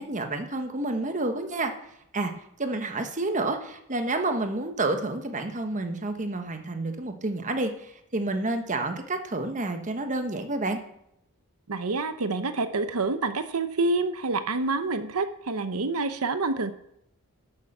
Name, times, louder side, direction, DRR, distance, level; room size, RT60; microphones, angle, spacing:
voice 1, 0.0-1.7 2.1-2.3 2.6-10.8, right 2 dB, 35° right, 6 dB, 1.3 m, -29 dB
voice 2, 11.7-16.7, right 3 dB, 70° right, 10 dB, 0.9 m, -27 dB
11.5 x 6.9 x 6.7 m, 0.77 s
head